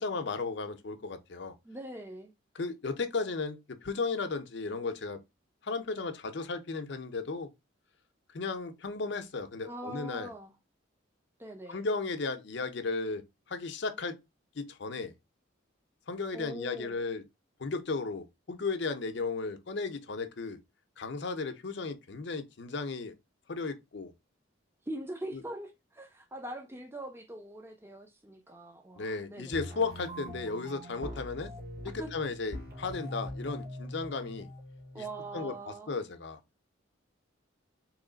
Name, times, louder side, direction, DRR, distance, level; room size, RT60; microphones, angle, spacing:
voice 1, 0.0-1.5 2.5-5.2 5.6-7.5 8.3-10.3 11.7-13.2 13.5-14.2 14.5-15.1 16.1-17.2 17.6-20.6 21.0-23.1 23.5-24.1 25.3-25.4 29.0-31.5 31.8-34.5 35.0-35.1 35.3-36.4, left 4 dB, 55° left, 0.6 m, -35 dB
voice 2, 1.6-2.3 9.7-10.5 11.4-11.9 16.3-16.9 24.9-29.6 32.0-32.1 34.9-35.9, right 1 dB, 10° right, 0.5 m, -42 dB
sound 1, 29.5-35.5, equal, 50° right, 1.5 m, -43 dB
3.1 x 3.0 x 3.8 m
head